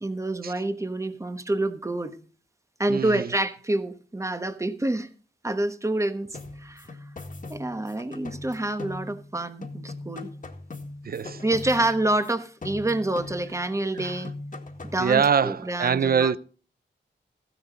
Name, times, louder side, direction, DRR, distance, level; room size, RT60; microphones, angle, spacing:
voice 1, 0.0-2.2 2.8-5.1 5.4-6.3 6.6-6.9 7.5-10.3 11.4-14.3 14.8-16.4, right 2 dB, 15° right, 1.1 m, -27 dB
voice 2, 2.9-3.3 11.0-11.4 13.9-14.2 15.0-16.4, right 7 dB, 55° right, 0.6 m, -24 dB
sound 1, 6.3-9.4 9.6-12.3 12.6-13.7 14.0-15.1, left 2 dB, 45° left, 1.9 m, -40 dB
15.0 x 10.5 x 4.0 m
wide cardioid pair, 140°, 19 cm